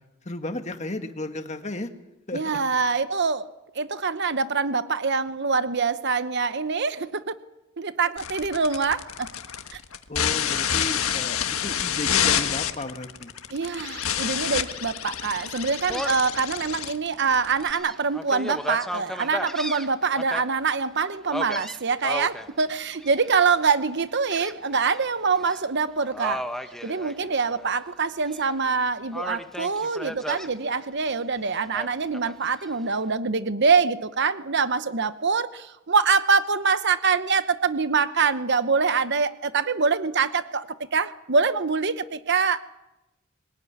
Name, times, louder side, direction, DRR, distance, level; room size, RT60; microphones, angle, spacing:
voice 1, 0.3-1.9 2.3-2.6 10.1-13.3, left 1 dB, 30° left, 6 dB, 1.8 m, -34 dB
voice 2, 2.3-3.5 3.7-7.3 7.8-9.3 9.7-9.8 13.5-26.4 26.8-42.6, right 5 dB, 55° right, 12 dB, 1.0 m, -24 dB
sound 1, 8.2-17.7, left 9 dB, 75° left, 1.6 m, -28 dB
Gull seagull, 15.9-16.3 16.8-16.9 17.5-20.4 21.3-22.5 23.0-23.4 24.3-25.0 25.3-25.6 26.1-27.7 28.0-28.8 29.1-30.5 31.7-32.7, equal, ahead, 1.1 m, -34 dB
23.5 x 18.5 x 9.6 m, 0.98 s
head